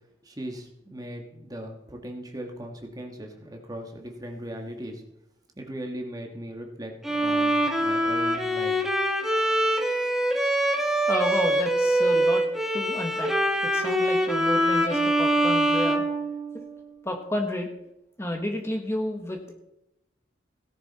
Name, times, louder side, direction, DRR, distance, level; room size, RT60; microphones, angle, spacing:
voice 1, 0.2-5.0 5.6-8.7, equal, 20° right, 3 dB, 1.6 m, -38 dB
Bowed string instrument, 7.0-16.9, right 1 dB, ahead, 1.2 m, -24 dB
voice 2, 11.1-12.4 12.7-13.3 13.6-16.0 16.5-16.6 17.0-17.7 18.2-19.5, left 1 dB, 15° left, 4 dB, 1.3 m, -31 dB
17.0 x 10.0 x 4.2 m, 0.84 s
head